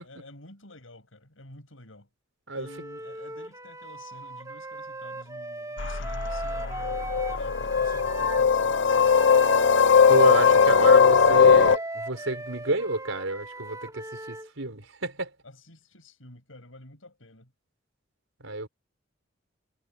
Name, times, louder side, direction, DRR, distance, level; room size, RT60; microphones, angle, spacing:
voice 1, 0.0-2.1 2.5-9.1 15.4-17.5, left 1 dB, 85° left, 7.0 m, -49 dB
Wind instrument woodwind instrument, 2.6-8.5 8.9-14.5, right 2 dB, 15° right, 3.1 m, -38 dB
sound 1, 5.8-11.8, left 6 dB, 65° left, 0.8 m, -19 dB
voice 2, 10.1-15.3 18.4-18.7, right 2 dB, 85° right, 4.9 m, -30 dB
head